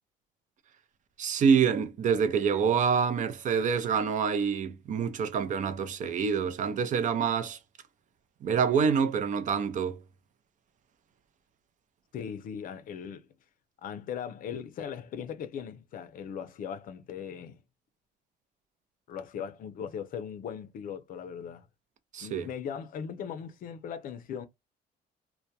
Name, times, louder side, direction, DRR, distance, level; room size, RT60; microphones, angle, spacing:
voice 1, 1.2-7.6 8.4-10.0 22.1-22.5, right 6 dB, 50° right, 0.5 m, -26 dB
voice 2, 12.1-13.3 13.8-17.6 19.1-21.7 22.2-24.5, left 7 dB, 55° left, 0.5 m, -39 dB
2.2 x 2.1 x 2.6 m
cardioid pair, 110°, 17 cm